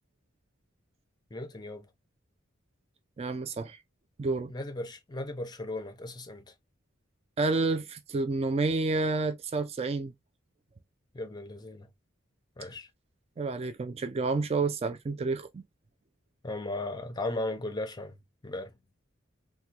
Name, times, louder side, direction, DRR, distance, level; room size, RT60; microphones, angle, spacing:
voice 1, 1.3-1.9 4.5-6.5 11.1-11.9 12.6-12.9 16.4-18.7, left 2 dB, 20° left, 0.6 m, -36 dB
voice 2, 3.2-3.8 4.2-4.5 7.4-10.1 13.4-15.6, right 3 dB, 30° right, 0.3 m, -29 dB
3.5 x 2.2 x 2.8 m
head